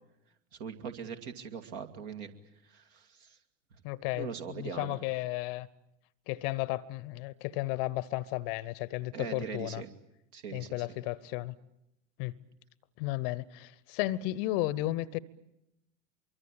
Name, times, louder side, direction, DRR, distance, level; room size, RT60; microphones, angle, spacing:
voice 1, 0.6-2.3 2.7-3.4 4.1-5.0 9.1-9.9 10.3-10.9, right 6 dB, 55° right, 2.4 m, -41 dB
voice 2, 3.8-5.7 6.3-9.8 10.5-11.5 12.2-12.4 13.0-15.2, left 17 dB, 45° left, 0.9 m, -34 dB
24.5 x 23.5 x 8.8 m
figure-of-eight pair, 80°, 38 cm